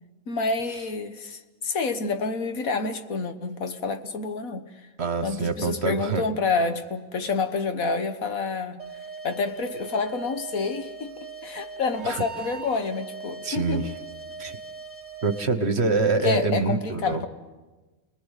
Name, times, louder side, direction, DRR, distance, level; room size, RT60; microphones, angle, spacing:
voice 1, 0.3-4.7 5.2-8.8 9.2-13.9 16.2-17.3, left 4 dB, 75° left, 1.7 m, -28 dB
voice 2, 5.0-6.2 12.0-12.2 13.4-13.9 14.4-14.6 15.2-17.2, right 4 dB, 50° right, 1.4 m, -25 dB
sound 1, 8.8-15.5, right 4 dB, 5° right, 2.8 m, -40 dB
29.5 x 19.5 x 8.2 m
omnidirectional pair, 1.5 m